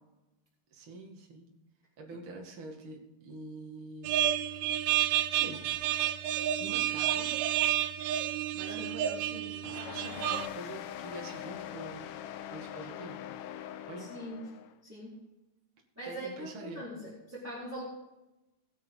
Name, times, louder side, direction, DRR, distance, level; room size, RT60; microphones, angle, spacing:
voice 1, 0.7-1.5 2.0-4.2 5.3-5.6 6.6-7.4 8.5-12.2 12.5-13.3 13.9-14.1 16.0-16.8, right 2 dB, 40° right, 0 dB, 2.4 m, -45 dB
sound 1, 4.0-10.5, right 12 dB, 85° right, 2.6 m, -30 dB
sound 2, 9.6-14.7, left 11 dB, 80° left, 1.9 m, -42 dB
voice 2, 14.0-14.4 14.8-15.2 16.0-17.8, right 1 dB, 5° right, -9 dB, 4.0 m, -42 dB
21.0 x 7.3 x 4.0 m, 0.99 s
omnidirectional pair, 4.5 m